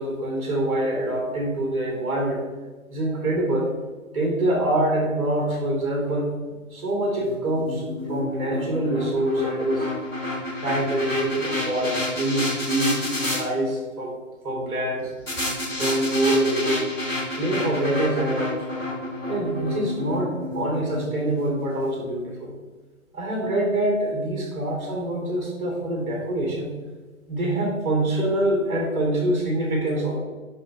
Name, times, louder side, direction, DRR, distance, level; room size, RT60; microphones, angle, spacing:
voice 1, 0.0-2.4 2.9-3.7 4.1-7.8 8.1-9.9 10.6-14.1 14.4-15.1 15.7-16.9 17.3-18.6 19.3-22.5 23.1-26.7 27.3-30.2, right 1 dB, 15° right, -2 dB, 2.5 m, -25 dB
sound 1, 7.2-13.4 15.3-21.5, left 2 dB, 5° left, 0.7 m, -29 dB
11.0 x 4.9 x 3.3 m, 1.3 s
figure-of-eight pair, 145°, 41 cm